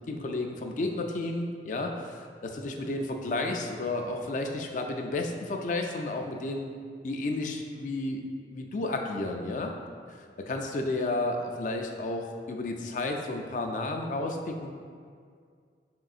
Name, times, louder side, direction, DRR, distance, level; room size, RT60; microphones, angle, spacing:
voice 1, 0.0-6.7 7.0-8.2 8.5-9.7 10.1-14.7, left 2 dB, 45° left, 3 dB, 0.3 m, -32 dB
5.9 x 3.7 x 2.4 m, 2.1 s
head